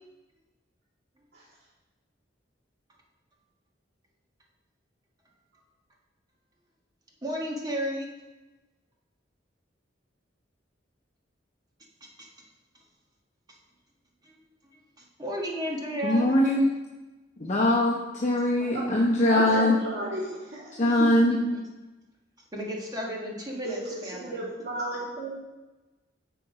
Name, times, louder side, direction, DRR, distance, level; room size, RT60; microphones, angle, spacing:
voice 1, 7.2-8.1 12.0-12.3 14.2-14.4 14.6-16.3 20.7-21.6 22.5-24.4, equal, 20° right, -2 dB, 1.5 m, -34 dB
voice 2, 16.0-16.7 17.4-19.8 20.8-21.4, left 1 dB, 40° left, -4 dB, 0.9 m, -22 dB
voice 3, 19.2-21.0 23.6-25.3, right 1 dB, 60° right, -9 dB, 2.7 m, -34 dB
6.9 x 6.1 x 5.0 m, 1.1 s
head